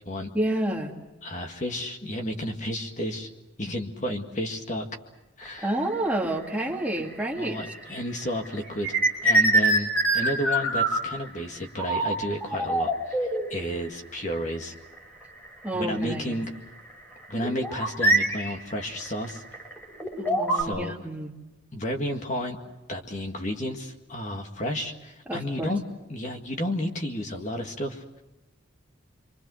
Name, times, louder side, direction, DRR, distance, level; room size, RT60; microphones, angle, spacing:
voice 1, 0.3-0.9 5.6-7.6 15.6-16.4 20.2-21.3 25.3-25.7, right 1 dB, 10° right, -1 dB, 2.3 m, -29 dB
voice 2, 1.2-3.3 3.6-4.9 5.4-5.7 7.4-9.0 9.2-14.7 15.7-16.5 17.3-19.4 20.5-21.0 21.7-22.6 22.9-25.8 26.1-28.0, equal, 35° left, 3 dB, 2.0 m, -32 dB
sound 1, 5.5-5.7 6.4-7.9 8.2-11.3 11.8-12.1 12.4-13.6 14.5-14.6 15.0-15.1 15.7-15.8 17.4-20.6, right 2 dB, 10° left, 5.5 m, -24 dB
28.5 x 24.5 x 6.4 m, 1.0 s
head